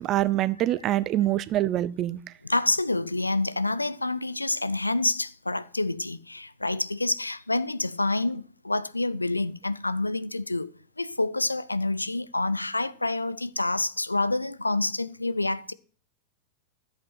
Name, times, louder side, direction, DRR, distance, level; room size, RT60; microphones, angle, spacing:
voice 1, 0.0-2.2, right 14 dB, 35° right, 0.7 m, -25 dB
voice 2, 2.4-10.7 11.0-15.7, left 2 dB, 85° left, 0.6 m, -27 dB
13.5 x 8.2 x 6.0 m
figure-of-eight pair, 90°, 0 cm